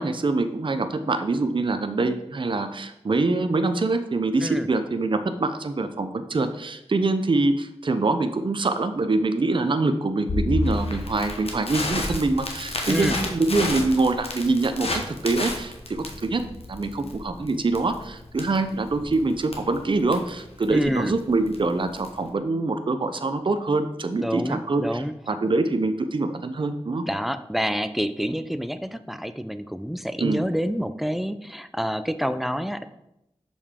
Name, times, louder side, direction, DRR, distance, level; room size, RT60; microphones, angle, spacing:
voice 1, 0.0-16.4 16.7-27.0 30.2-30.4, right 3 dB, 50° right, 8 dB, 0.5 m, -24 dB
Crackle, 10.3-22.3, left 2 dB, 65° left, 1.2 m, -31 dB
voice 2, 12.9-13.2 20.7-21.1 24.2-25.1 27.1-32.9, equal, ahead, 11 dB, 0.4 m, -27 dB
6.5 x 5.3 x 3.6 m, 0.85 s
cardioid pair, 50°, 11 cm